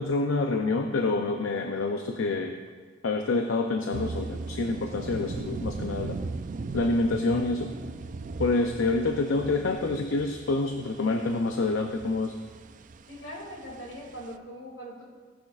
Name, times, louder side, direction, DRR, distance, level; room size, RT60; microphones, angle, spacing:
voice 1, 0.0-2.5 3.0-6.2 6.7-7.7 8.4-12.4, left 3 dB, 85° left, 4 dB, 0.6 m, -27 dB
sound 1, 3.9-14.4, right 3 dB, 40° right, 0.4 m, -38 dB
voice 2, 13.1-15.0, equal, 70° left, -1 dB, 2.5 m, -41 dB
15.0 x 10.0 x 2.4 m, 1.5 s
head